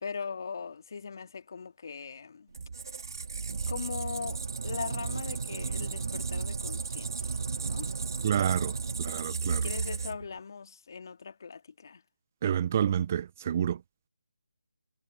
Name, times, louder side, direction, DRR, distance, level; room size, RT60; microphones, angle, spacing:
voice 1, 0.0-2.5 3.7-7.4 7.6-7.9 9.5-12.0, left 5 dB, 45° left, 2.1 m, -40 dB
Squeak, 2.5-10.4, right 4 dB, 50° right, 2.4 m, -34 dB
voice 2, 8.2-8.7 9.0-9.7 12.4-13.8, right 9 dB, 30° right, 0.6 m, -28 dB
figure-of-eight pair, 160°, 3 cm